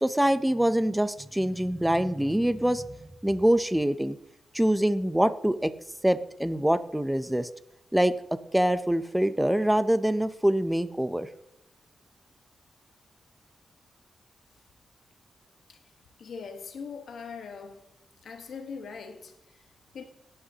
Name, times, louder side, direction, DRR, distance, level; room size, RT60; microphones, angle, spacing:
voice 1, 0.0-4.2 4.5-5.7 6.0-7.5 7.9-8.1 8.5-11.3, right 1 dB, 5° right, 0.5 m, -25 dB
voice 2, 16.2-17.9 18.2-20.0, left 5 dB, 75° left, 1.3 m, -42 dB
18.5 x 9.6 x 2.8 m
wide cardioid pair, 140°, 0 cm